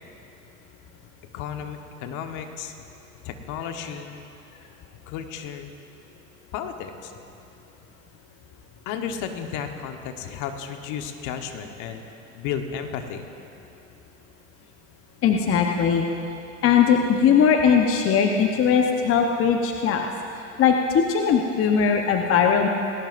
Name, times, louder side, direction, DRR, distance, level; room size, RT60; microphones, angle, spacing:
voice 1, 1.3-2.7 3.2-4.2 4.6-4.7 5.1-5.7 6.5-7.1 8.8-13.2, left 8 dB, 50° left, 6 dB, 1.3 m, -33 dB
voice 2, 15.2-16.1 16.6-20.0 20.6-22.7, left 7 dB, 35° left, 3 dB, 1.0 m, -19 dB
19.5 x 18.0 x 2.6 m, 2.8 s
hypercardioid pair, 95°, 40 cm